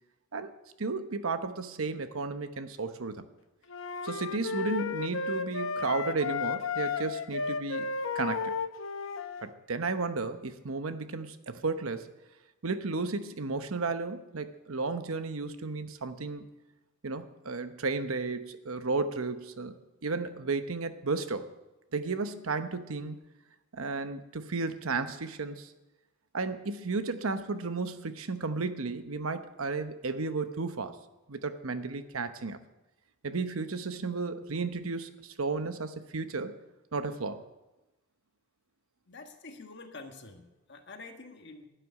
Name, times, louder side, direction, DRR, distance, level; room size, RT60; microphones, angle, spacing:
voice 1, 0.8-3.2 4.0-7.9 8.1-8.5 9.4-12.1 12.6-16.4 17.0-19.7 20.0-21.5 21.9-23.2 23.7-25.7 26.3-31.0 31.3-32.6 33.2-36.5 36.9-37.4, right 3 dB, 90° right, 10 dB, 0.9 m, -33 dB
sound 1, 3.7-9.5, left 5 dB, 70° left, 0.8 m, -33 dB
voice 2, 39.1-41.7, left 3 dB, 55° left, 5 dB, 1.5 m, -47 dB
12.0 x 6.8 x 9.6 m, 1.0 s
head